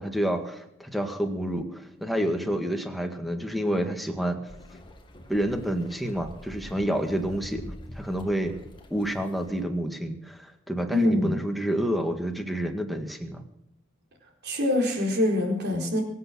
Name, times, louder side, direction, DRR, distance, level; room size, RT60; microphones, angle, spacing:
voice 1, 0.0-4.4 5.3-7.6 8.0-8.6 8.9-13.4, right 1 dB, ahead, 4 dB, 1.9 m, -29 dB
sound 1, 4.5-9.6, equal, 25° left, 2.0 m, -45 dB
voice 2, 10.9-11.4 14.4-16.0, left 1 dB, 55° right, 0 dB, 4.5 m, -24 dB
24.0 x 8.5 x 6.3 m, 0.80 s
head